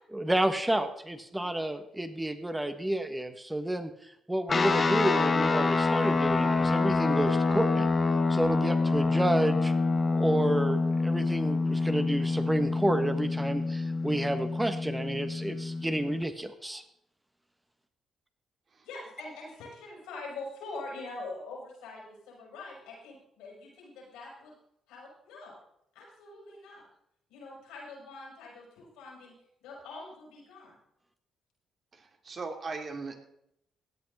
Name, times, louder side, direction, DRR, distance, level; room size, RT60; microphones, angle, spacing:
voice 1, 0.1-7.9 8.3-9.7 10.1-16.8, right 1 dB, 10° right, 8 dB, 1.4 m, -30 dB
sound 1, 4.5-16.2, left 3 dB, 40° left, 1.2 m, -27 dB
voice 2, 18.8-24.5 24.9-25.6 25.9-26.9 27.3-29.3 29.6-30.8, left 3 dB, 90° left, -3 dB, 6.5 m, -44 dB
voice 3, 31.9-33.2, right 4 dB, 50° right, 4 dB, 2.5 m, -39 dB
16.0 x 9.5 x 4.2 m, 0.75 s
supercardioid pair, 60°, 0 cm